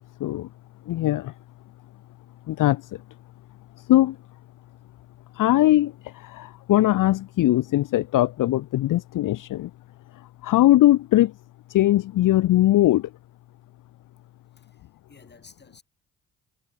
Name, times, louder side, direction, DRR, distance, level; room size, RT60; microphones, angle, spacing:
voice 1, 0.9-1.3 2.5-3.0 3.8-4.2 5.3-9.7 10.1-11.3 11.7-13.1, left 15 dB, 60° left, 0.7 m, -21 dB
voice 2, 14.5-15.8, left 4 dB, 30° left, 6.4 m, -53 dB
cardioid pair, 75°, 35 cm